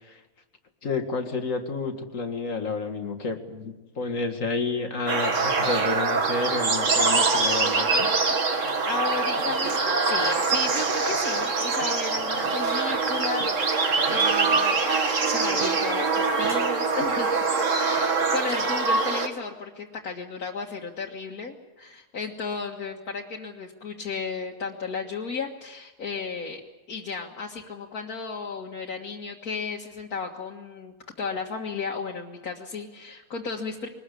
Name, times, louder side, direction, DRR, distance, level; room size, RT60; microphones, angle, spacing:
voice 1, 0.8-8.1, left 3 dB, 60° left, 6 dB, 2.3 m, -30 dB
sound 1, 5.1-19.3, right 4 dB, 60° right, 2.1 m, -24 dB
voice 2, 8.8-13.8 14.1-14.8 15.2-17.3 17.8-26.6 26.9-33.9, left 4 dB, 90° left, -2 dB, 2.2 m, -34 dB
23.0 x 19.5 x 8.4 m, 1.1 s
omnidirectional pair, 1.5 m